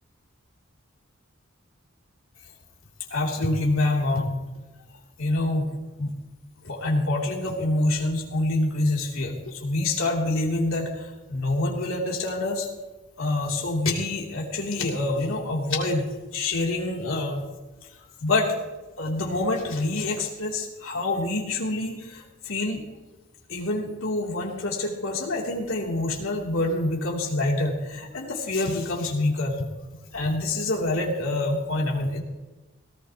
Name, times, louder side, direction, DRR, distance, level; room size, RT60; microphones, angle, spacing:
voice 1, 3.1-4.3 5.2-6.1 6.6-12.7 13.2-16.1 16.3-17.4 18.2-18.5 19.0-22.8 23.5-29.7 30.1-32.2, left 2 dB, 90° left, -2 dB, 3.1 m, -26 dB
19.0 x 18.0 x 3.0 m, 1.1 s
head